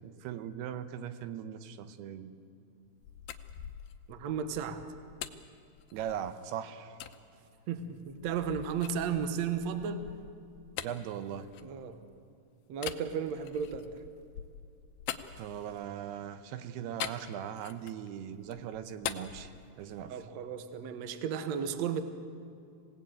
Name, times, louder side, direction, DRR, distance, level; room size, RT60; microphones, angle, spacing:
voice 1, 0.0-2.3 5.9-7.0 10.8-11.5 15.4-19.5 19.8-20.2, right 9 dB, 85° right, 10 dB, 3.0 m, -39 dB
sound 1, 2.9-6.4 7.0-7.2 7.8-12.2 12.8-16.0 17.0-18.1 18.4-20.2, left 10 dB, 75° left, 2.5 m, -44 dB
voice 2, 4.1-4.8 7.7-10.1 11.6-12.0 12.7-13.9 20.1-22.0, right 7 dB, 60° right, 9 dB, 1.9 m, -34 dB
26.5 x 17.5 x 9.0 m, 2.4 s
omnidirectional pair, 4.6 m